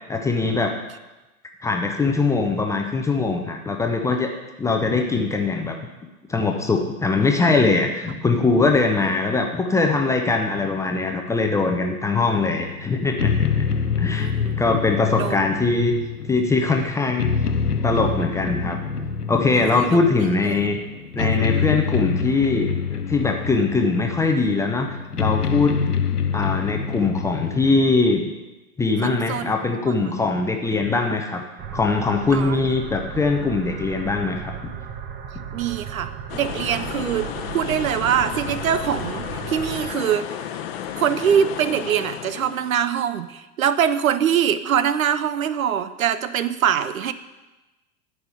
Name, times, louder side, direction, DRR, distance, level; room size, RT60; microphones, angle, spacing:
voice 1, 0.1-0.7 1.6-4.3 4.6-5.8 6.3-13.7 14.0-14.3 14.6-15.9 16.3-17.3 17.8-20.8 21.1-26.0 26.3-28.3 28.8-31.4 31.7-34.5, left 3 dB, 5° left, 2 dB, 0.7 m, -22 dB
sound 1, 12.2-27.9, left 6 dB, 90° left, 0.8 m, -26 dB
voice 2, 13.8-14.6 15.2-15.5 19.5-20.0 20.4-20.7 21.2-21.4 29.0-29.6 29.9-30.2 32.3-32.6 35.5-40.6 41.0-47.1, right 9 dB, 65° right, 13 dB, 0.7 m, -24 dB
sound 2, 31.6-39.9, right 8 dB, 25° right, 0.8 m, -35 dB
sound 3, 36.3-42.9, left 9 dB, 40° left, 0.9 m, -33 dB
9.5 x 5.6 x 8.2 m, 1.1 s
figure-of-eight pair, 105°, 45 cm